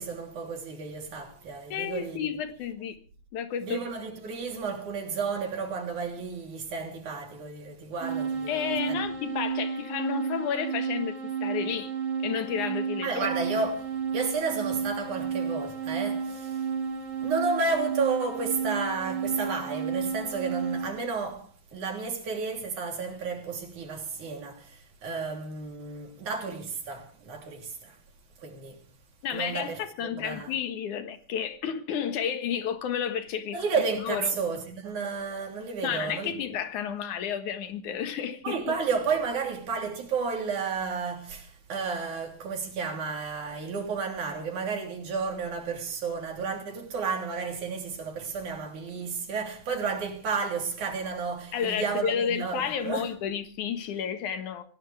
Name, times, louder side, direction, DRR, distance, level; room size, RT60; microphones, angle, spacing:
voice 1, 0.0-2.3 3.6-9.0 13.0-16.7 17.2-28.0 28.4-28.8 29.3-30.5 33.5-36.4 38.4-53.1, right 5 dB, 90° right, 4.7 m, -32 dB
voice 2, 1.7-3.0 3.3-3.8 8.5-11.9 12.2-13.3 29.2-33.6 34.0-34.4 35.8-38.8 51.5-54.6, left 8 dB, 90° left, 3.0 m, -31 dB
sound 1, 8.0-20.9, right 6 dB, 70° right, 3.5 m, -32 dB
24.5 x 16.5 x 3.4 m
omnidirectional pair, 3.4 m